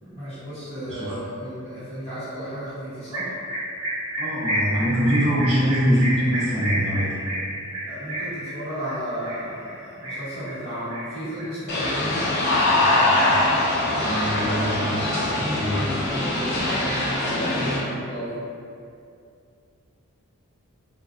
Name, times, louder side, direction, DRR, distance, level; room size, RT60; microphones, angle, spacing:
voice 1, 0.0-3.3 7.9-12.3 15.4-18.4, equal, 30° left, -14 dB, 0.8 m, -34 dB
voice 2, 0.9-1.2 4.2-7.2 13.9-15.1 15.4-15.8, equal, 25° right, -14 dB, 0.5 m, -23 dB
sound 1, 3.1-12.5 12.8-13.6 13.9-14.9 15.1-16.5, right 1 dB, 80° right, 0.7 m, -31 dB
sound 2, 11.7-17.8, left 2 dB, 45° left, 0.5 m, -23 dB
2.5 x 2.1 x 2.4 m, 2.4 s
head